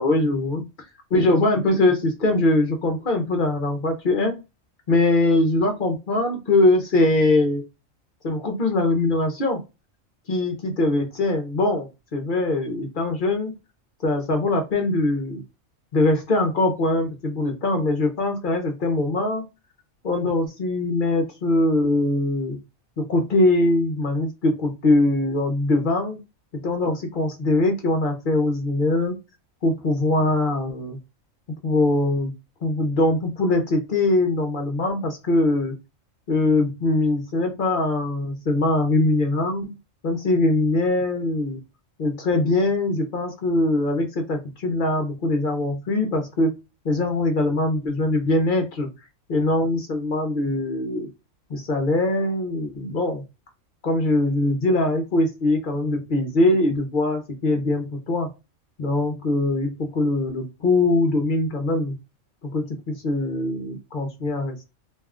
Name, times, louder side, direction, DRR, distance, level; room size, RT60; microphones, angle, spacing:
voice 1, 0.0-0.6 1.1-4.4 4.9-7.6 8.2-9.6 10.3-13.5 14.0-15.4 15.9-19.5 20.0-22.6 23.0-26.2 26.5-29.2 29.6-31.0 31.6-32.3 32.6-35.7 36.3-39.8 40.0-41.6 42.0-46.5 46.8-48.9 49.3-51.1 51.5-53.2 53.8-58.3 58.8-61.9 62.4-64.7, left 2 dB, 50° left, 3 dB, 0.7 m, -22 dB
2.7 x 2.2 x 3.5 m, 0.26 s
omnidirectional pair, 1.4 m